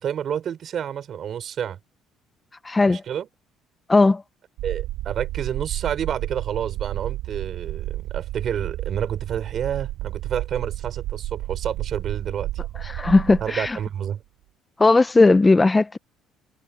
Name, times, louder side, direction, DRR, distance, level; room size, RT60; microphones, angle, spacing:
voice 1, 0.0-1.8 2.8-3.3 4.6-12.5 13.4-14.2, right 9 dB, 50° right, 4.6 m, -29 dB
voice 2, 2.6-3.0 3.9-4.2 12.9-13.8 14.8-16.0, left 3 dB, 20° left, 0.7 m, -17 dB
sound 1, 4.6-14.1, right 16 dB, 75° right, 6.5 m, -31 dB
cardioid pair, 100°, 0 cm